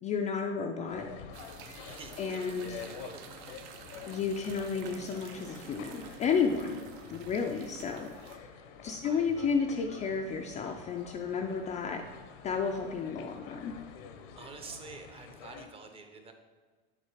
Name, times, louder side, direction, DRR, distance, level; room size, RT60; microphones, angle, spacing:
voice 1, 0.0-1.1 2.2-2.8 4.1-6.8 7.1-8.5 8.8-12.0 12.4-13.7, left 5 dB, 25° left, 3 dB, 0.3 m, -32 dB
sound 1, 0.9-15.7, left 6 dB, 70° left, 0.8 m, -48 dB
sound 2, 1.3-8.4, right 8 dB, 60° right, 0.7 m, -50 dB
voice 2, 1.9-3.6 9.0-9.5 9.9-10.0 14.4-16.3, right 4 dB, 20° right, 6 dB, 0.6 m, -49 dB
7.4 x 3.7 x 4.8 m, 1.4 s
supercardioid pair, 135°, 29 cm